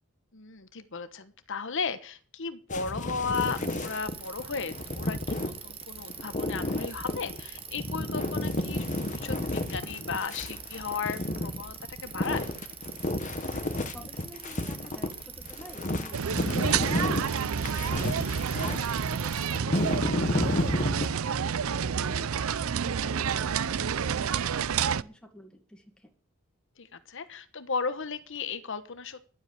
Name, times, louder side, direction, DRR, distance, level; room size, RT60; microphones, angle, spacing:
voice 1, 0.3-12.5 18.5-18.7 21.6-21.8 26.8-29.2, left 5 dB, 60° left, 13 dB, 1.1 m, -35 dB
sound 1, 2.7-21.1, left 1 dB, 35° left, 1.2 m, -32 dB
Bicycle, 3.3-19.6, right 8 dB, 25° right, 1.2 m, -45 dB
voice 2, 13.9-18.2 21.9-26.1, left 1 dB, 5° left, 2 dB, 2.1 m, -50 dB
sound 2, 16.1-25.0, right 7 dB, 75° right, 0.5 m, -29 dB
12.0 x 8.0 x 8.2 m, 0.43 s
head